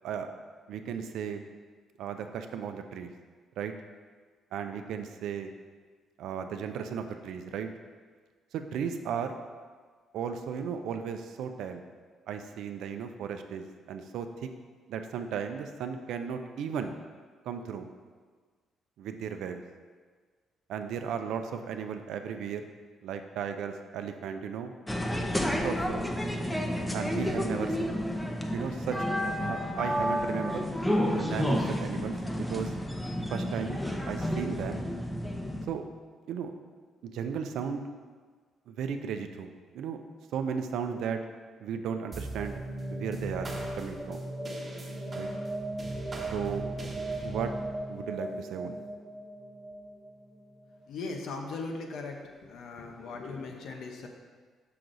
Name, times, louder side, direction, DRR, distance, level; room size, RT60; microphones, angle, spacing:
voice 1, 0.7-1.4 2.0-3.1 3.6-3.7 4.5-5.5 6.2-7.7 8.5-9.3 10.1-11.8 12.3-14.5 14.9-16.9 17.4-17.9 19.0-19.6 20.7-22.7 23.0-24.7 25.6-26.0 26.9-28.0 28.5-30.7 31.1-32.7 33.3-33.8 34.1-34.8 35.7-35.8 36.3-36.5 37.0-37.8 38.7-39.5 39.7-40.0 40.3-41.2 41.6-42.6 42.9-43.5 43.8-44.2 45.1-45.3 46.3-46.7 47.2-47.5 47.9-48.8, right 7 dB, 80° right, 7 dB, 0.5 m, -35 dB
sound 1, 24.9-35.6, equal, 5° left, 0.7 m, -30 dB
sound 2, 42.1-50.8, right 1 dB, 30° right, 1.1 m, -37 dB
voice 2, 50.9-52.2 52.5-54.1, left 3 dB, 75° left, 3 dB, 0.9 m, -38 dB
6.3 x 5.8 x 3.9 m, 1.5 s
cardioid pair, 90°, 0 cm